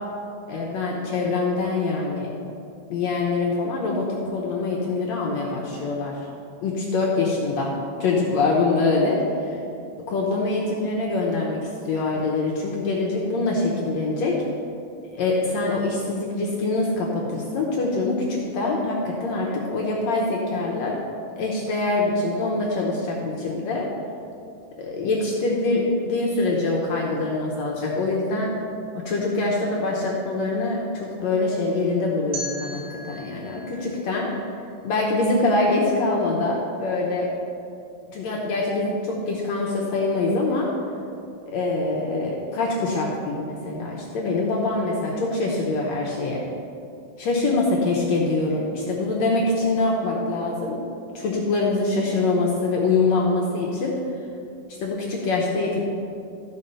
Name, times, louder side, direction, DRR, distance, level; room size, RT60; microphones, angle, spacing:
voice 1, 0.5-2.3 2.9-6.2 6.6-7.7 8.0-9.6 10.1-14.3 15.1-21.0 21.4-23.9 24.8-28.5 29.1-34.3 34.8-37.3 38.1-40.7 41.5-46.4 47.2-50.8 51.1-53.9 54.8-55.8, left 3 dB, 65° left, -3 dB, 1.9 m, -24 dB
sound 1, 32.3-35.3, right 1 dB, 60° right, 2.1 m, -38 dB
14.0 x 4.7 x 5.5 m, 2.5 s
omnidirectional pair, 3.8 m